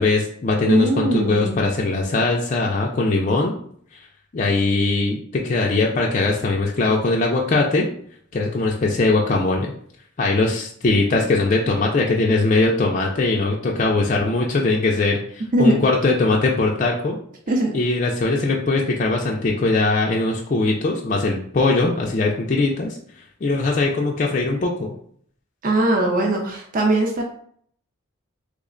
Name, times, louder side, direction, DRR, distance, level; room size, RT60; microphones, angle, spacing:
voice 1, 0.0-3.5 4.3-7.8 8.3-9.7 10.2-17.2 17.7-23.0 23.4-24.9, left 3 dB, 35° left, -1 dB, 0.3 m, -20 dB
voice 2, 0.6-1.6 15.5-15.8 17.5-17.7 25.6-27.2, right 1 dB, 40° right, 1 dB, 0.5 m, -20 dB
3.2 x 2.1 x 3.7 m, 0.62 s
head